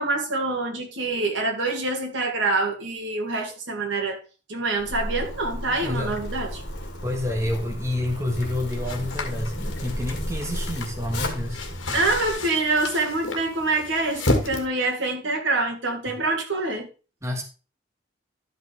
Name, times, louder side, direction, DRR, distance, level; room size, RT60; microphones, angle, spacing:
voice 1, 0.0-4.2 4.5-6.6 11.9-16.9, right 2 dB, 75° right, 2.2 m, -26 dB
Zipper (clothing), 4.8-12.3, equal, 65° left, 2.4 m, -33 dB
voice 2, 5.8-6.2 7.0-11.6 17.2-17.4, left 1 dB, 15° right, 1.4 m, -28 dB
sound 1, 8.7-14.6, left 2 dB, 80° left, 1.8 m, -32 dB
12.0 x 5.8 x 3.4 m
head